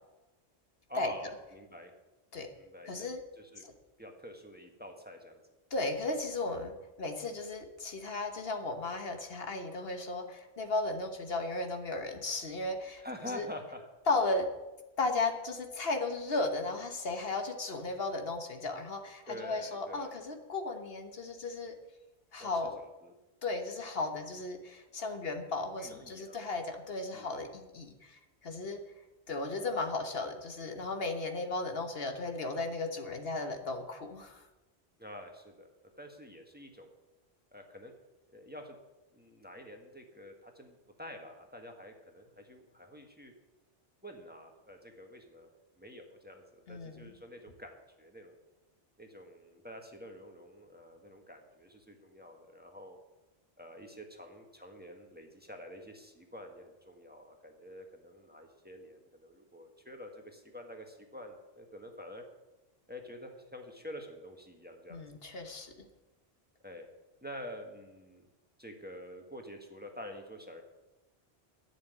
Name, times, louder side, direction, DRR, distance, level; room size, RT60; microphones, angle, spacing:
voice 1, 0.9-1.9 2.5-3.1 3.5-3.6 4.0-5.4 13.0-13.8 19.3-20.2 22.4-22.5 22.8-23.1 25.8-26.4 27.1-27.5 35.0-35.7 36.0-36.9 37.5-37.9 38.3-38.7 39.1-43.3 44.0-45.5 45.8-48.4 49.0-53.0 53.6-62.2 62.9-65.0 66.6-66.9 67.2-68.3 68.6-70.6, equal, 10° right, 3 dB, 1.6 m, -47 dB
voice 2, 2.8-3.2 3.6-3.7 5.7-13.0 13.3-13.5 14.1-14.5 15.0-21.8 22.3-22.8 23.4-28.8 29.3-34.4 46.7-47.2 64.9-65.7, left 3 dB, 65° left, 6 dB, 1.4 m, -35 dB
11.5 x 7.5 x 9.8 m, 1.1 s
omnidirectional pair, 1.1 m